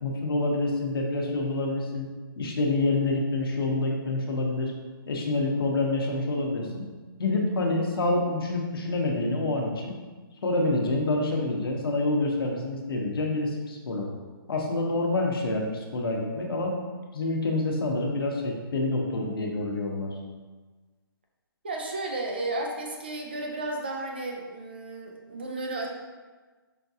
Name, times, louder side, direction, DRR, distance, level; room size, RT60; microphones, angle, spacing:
voice 1, 0.0-2.1 2.4-4.7 5.1-6.9 7.2-10.0 10.4-14.1 14.5-16.7 17.1-20.2, left 2 dB, 75° left, 0 dB, 0.8 m, -27 dB
voice 2, 21.6-25.9, right 2 dB, 25° right, 1 dB, 0.4 m, -33 dB
5.1 x 2.4 x 2.7 m, 1.3 s
hypercardioid pair, 175°, 13 cm